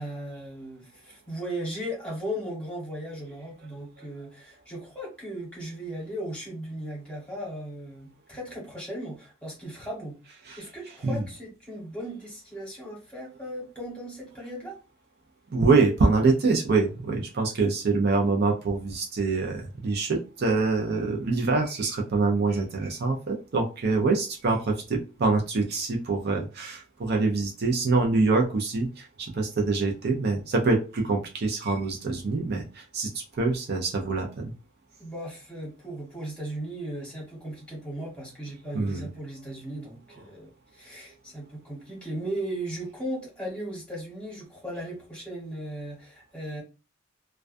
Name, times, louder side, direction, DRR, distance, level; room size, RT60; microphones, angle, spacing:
voice 1, 0.0-14.8 35.0-46.6, right 1 dB, 5° left, -3 dB, 1.1 m, -37 dB
voice 2, 15.5-34.5 38.7-39.1, right 3 dB, 55° right, 2 dB, 0.5 m, -25 dB
2.3 x 2.2 x 2.5 m, 0.30 s
head